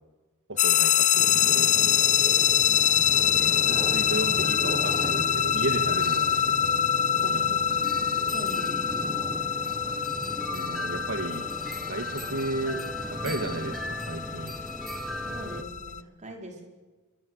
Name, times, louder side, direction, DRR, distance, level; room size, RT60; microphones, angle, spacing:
voice 1, 0.5-2.5 3.3-6.6 7.2-7.6 10.5-11.4 11.9-12.8 13.1-14.6, right 2 dB, 60° right, 5 dB, 2.1 m, -34 dB
sound 1, 0.6-16.0, left 9 dB, 35° left, 0.8 m, -25 dB
sound 2, 1.2-15.6, equal, ahead, 1.3 m, -36 dB
voice 2, 7.3-7.9 8.3-9.2 15.2-16.6, right 1 dB, 35° right, 2 dB, 5.0 m, -42 dB
27.5 x 24.0 x 8.2 m, 1.3 s
head